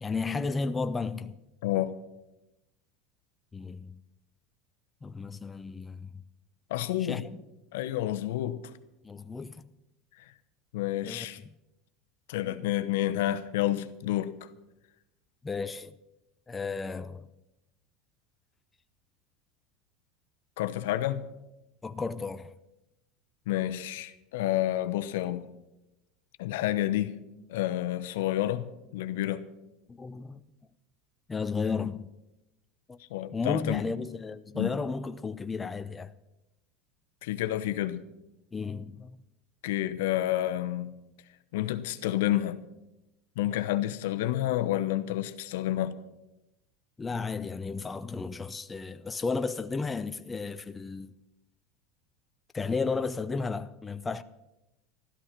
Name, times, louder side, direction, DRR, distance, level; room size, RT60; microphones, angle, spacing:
voice 1, 0.0-1.4 3.5-4.0 5.0-6.1 7.0-7.2 9.0-9.6 11.0-11.3 12.4-12.6 15.4-15.9 16.5-17.2 21.8-22.5 29.9-30.4 31.3-32.1 32.9-33.0 33.3-36.1 38.5-39.2 47.0-51.2 52.5-54.2, left 4 dB, 15° left, 0.5 m, -33 dB
voice 2, 1.6-1.9 6.7-7.3 7.7-8.6 10.7-11.4 12.3-14.5 20.6-21.2 23.5-25.5 26.4-27.2 27.5-29.4 33.1-33.9 34.5-34.7 37.2-38.1 39.6-40.9 41.5-42.6 43.4-46.0, left 14 dB, 80° left, 0.9 m, -29 dB
13.0 x 13.0 x 5.9 m
supercardioid pair, 110°, 0 cm